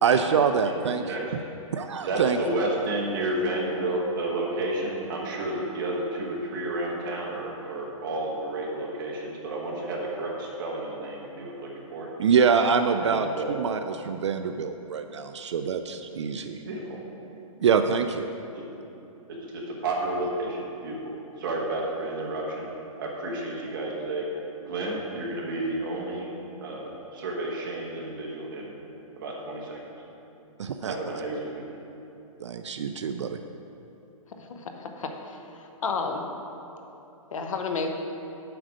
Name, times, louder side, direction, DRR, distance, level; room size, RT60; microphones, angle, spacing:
voice 1, 0.0-1.3 1.7-2.4 12.2-16.6 17.6-18.3 30.6-31.2 32.4-33.4, right 6 dB, 55° right, 8 dB, 0.4 m, -25 dB
voice 2, 0.6-1.2 2.0-12.1 13.0-13.6 16.6-17.0 18.5-18.6 19.4-22.7 23.0-24.2 24.6-26.3 26.6-28.7 29.1-29.8 30.9-31.6, right 2 dB, 35° right, -3 dB, 1.4 m, -31 dB
voice 3, 34.4-36.2 37.3-37.9, left 4 dB, 65° left, 4 dB, 0.9 m, -32 dB
7.8 x 5.0 x 6.3 m, 2.9 s
hypercardioid pair, 175°, 18 cm